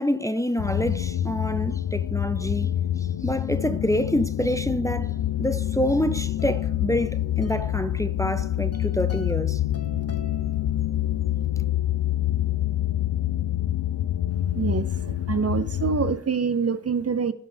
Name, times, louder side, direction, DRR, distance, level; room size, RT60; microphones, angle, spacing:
voice 1, 0.0-2.7 3.0-9.6, equal, 10° left, 0.6 m, -27 dB
sound 1, 0.6-16.2, left 12 dB, 70° left, 0.5 m, -26 dB
sound 2, 5.8-11.2, left 4 dB, 35° left, 1.0 m, -45 dB
voice 2, 14.5-17.3, right 6 dB, 40° right, 0.6 m, -26 dB
16.0 x 5.6 x 3.4 m
cardioid pair, 65°, 41 cm